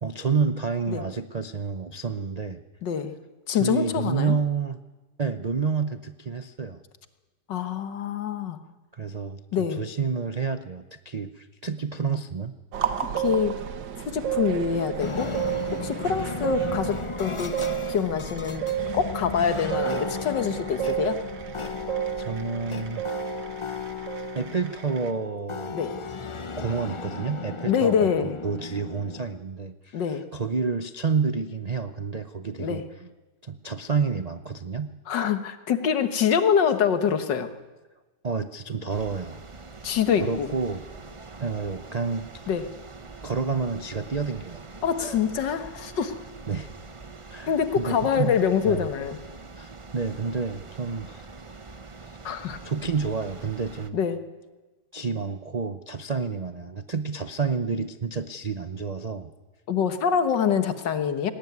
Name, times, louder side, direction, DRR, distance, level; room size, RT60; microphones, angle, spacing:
voice 1, 0.0-2.6 3.5-4.8 5.2-6.8 8.9-12.5 22.2-23.1 24.3-25.8 26.6-32.8 33.4-34.9 38.2-39.4 40.2-40.8 41.4-42.3 43.2-44.6 45.0-45.2 46.5-46.7 47.3-48.3 48.6-48.9 49.5-51.3 52.0-52.2 52.6-54.0 54.9-59.3, right 5 dB, 65° right, 10 dB, 0.4 m, -29 dB
voice 2, 2.8-3.1 3.5-4.4 7.5-8.6 9.5-9.8 13.2-13.6 14.0-15.3 15.7-17.6 17.9-18.7 18.9-21.2 25.7-26.0 27.7-28.4 29.9-30.2 32.6-32.8 35.1-37.5 39.8-40.5 42.5-42.7 44.8-46.1 47.5-49.2 52.2-52.6 53.9-54.2 59.7-61.3, left 7 dB, 75° left, 9 dB, 2.0 m, -25 dB
sound 1, 12.7-25.1, right 11 dB, 80° right, 1.9 m, -32 dB
sound 2, 15.0-29.2, left 4 dB, 55° left, 0.3 m, -35 dB
sound 3, 38.9-53.9, right 3 dB, 25° right, 0.6 m, -44 dB
19.5 x 18.5 x 9.5 m, 1.2 s
omnidirectional pair, 1.9 m